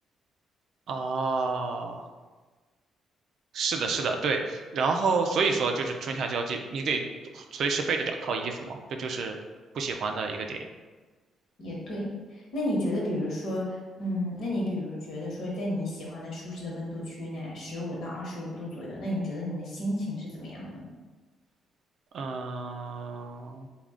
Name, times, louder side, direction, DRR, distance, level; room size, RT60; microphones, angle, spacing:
voice 1, 0.9-2.1 3.5-7.0 7.3-9.4 9.7-10.6 22.1-23.7, right 4 dB, 65° right, 4 dB, 0.4 m, -29 dB
voice 2, 11.6-20.9, left 1 dB, 65° left, -4 dB, 1.2 m, -33 dB
3.5 x 2.3 x 3.7 m, 1.3 s
cardioid pair, 90°, 0 cm